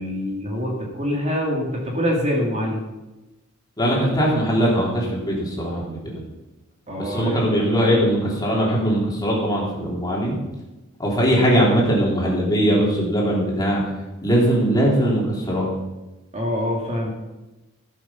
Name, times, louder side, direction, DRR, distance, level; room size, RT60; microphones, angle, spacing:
voice 1, 0.0-2.8 6.9-7.5 16.3-17.1, equal, 35° right, -1 dB, 2.5 m, -25 dB
voice 2, 3.8-6.2 7.0-10.4 11.0-13.8 14.2-15.7, equal, 20° left, -4 dB, 3.6 m, -20 dB
16.5 x 7.7 x 5.8 m, 1.1 s
head